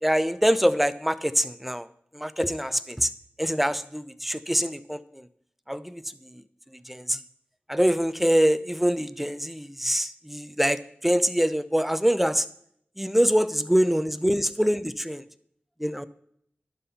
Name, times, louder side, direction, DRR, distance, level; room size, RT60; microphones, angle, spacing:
voice 1, 0.0-1.9 2.1-3.1 3.4-5.3 5.7-6.4 6.9-7.2 7.7-12.5 13.0-15.2 15.8-16.0, equal, 5° right, 13 dB, 0.5 m, -24 dB
11.0 x 3.7 x 6.8 m, 0.68 s
cardioid pair, 45°, 4 cm